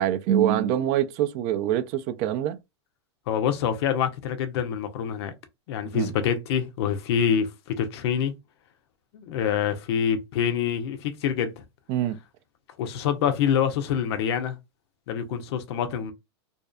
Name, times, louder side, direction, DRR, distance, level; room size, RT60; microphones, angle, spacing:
voice 1, 0.0-2.6 5.9-6.1 11.9-12.2, right 11 dB, 45° right, 0.4 m, -24 dB
voice 2, 3.3-5.3 5.7-8.3 9.1-11.6 12.8-14.6 15.1-16.1, left 8 dB, 65° left, 0.5 m, -26 dB
2.5 x 2.3 x 2.2 m
supercardioid pair, 130°, 15 cm